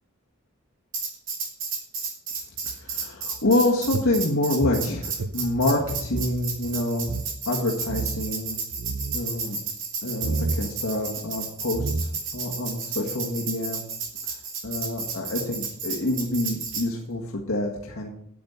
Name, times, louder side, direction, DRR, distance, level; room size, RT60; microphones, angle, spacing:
Tambourine, 0.9-16.9, right 5 dB, 65° right, 2.6 m, -32 dB
voice 1, 2.6-7.1 7.5-8.6 9.1-9.6 10.0-13.8 14.3-14.4 14.6-18.1, left 2 dB, 80° left, -2 dB, 1.7 m, -27 dB
sound 1, 3.9-6.4 6.6-6.7 7.0-7.3 7.9-8.3 8.7-9.2 10.2-10.6 11.4-11.5 11.7-12.4, right 3 dB, 80° right, 0.7 m, -30 dB
10.0 x 8.7 x 5.7 m, 0.73 s
head